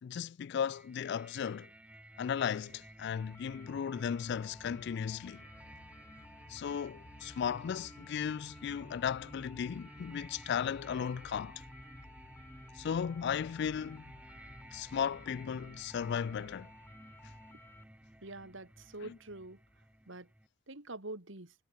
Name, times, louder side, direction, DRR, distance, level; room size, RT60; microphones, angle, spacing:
voice 1, 0.0-1.7 2.2-5.4 6.5-11.6 12.8-14.0 14.7-16.7 19.0-19.1, left 7 dB, 55° left, 0.3 m, -36 dB
sound 1, 0.7-20.5, right 1 dB, 5° right, 1.4 m, -55 dB
sound 2, 3.0-17.8, left 2 dB, 10° left, 3.6 m, -58 dB
sound 3, 3.5-20.0, left 1 dB, 80° left, 2.1 m, -59 dB
voice 2, 18.2-19.6 20.1-20.3 20.7-21.5, right 2 dB, 60° right, 2.7 m, -45 dB
head